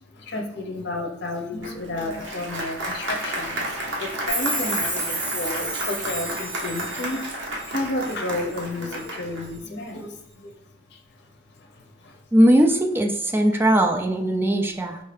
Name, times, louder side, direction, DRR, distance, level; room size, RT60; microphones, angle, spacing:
voice 1, 0.1-10.6 10.9-12.2 13.5-13.6 14.4-14.5, left 2 dB, 55° left, 3 dB, 0.8 m, -32 dB
Applause, 1.6-9.5, right 1 dB, 65° right, 0.9 m, -32 dB
Chime, 4.3-8.2 8.5-9.1 9.4-9.5, right 2 dB, 40° right, 1.1 m, -31 dB
voice 2, 12.3-15.0, right 1 dB, 10° right, 3 dB, 0.4 m, -19 dB
5.3 x 2.7 x 3.3 m, 0.76 s
head